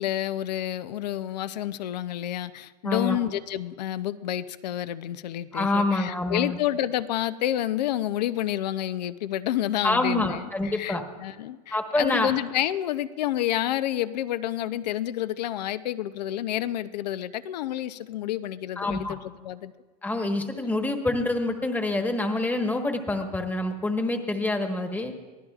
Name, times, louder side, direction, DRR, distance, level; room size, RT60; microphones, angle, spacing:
voice 1, 0.0-11.0 11.2-19.7, left 12 dB, 85° left, 0.6 m, -29 dB
voice 2, 2.8-3.2 5.5-6.6 9.8-11.0 11.7-12.3 18.8-19.2 20.0-25.1, left 2 dB, 10° left, 1.2 m, -26 dB
22.5 x 16.0 x 2.4 m
supercardioid pair, 125°, 21 cm